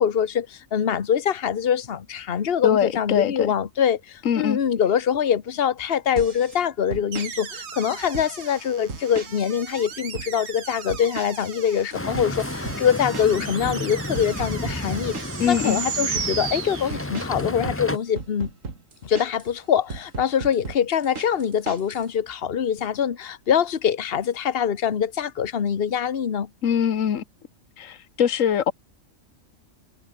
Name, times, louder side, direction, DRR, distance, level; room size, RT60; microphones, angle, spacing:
voice 1, 0.0-18.5 19.0-26.5, left 8 dB, 50° left, 1.3 m, -24 dB
voice 2, 2.6-3.5 4.2-4.6 15.4-15.8 26.6-27.2 27.8-28.7, left 8 dB, 75° left, 1.5 m, -22 dB
sound 1, 6.2-6.6 6.9-7.3 7.9-8.5 8.9-9.5 9.8-10.3 10.9-11.5 11.8-15.5 15.9-16.3 16.9-19.5 19.9-22.1, right 4 dB, 75° right, 3.1 m, -36 dB
sound 2, 7.1-17.4, right 6 dB, 55° right, 1.5 m, -35 dB
sound 3, 11.9-18.0, left 1 dB, 10° left, 1.2 m, -31 dB
omnidirectional pair, 1.4 m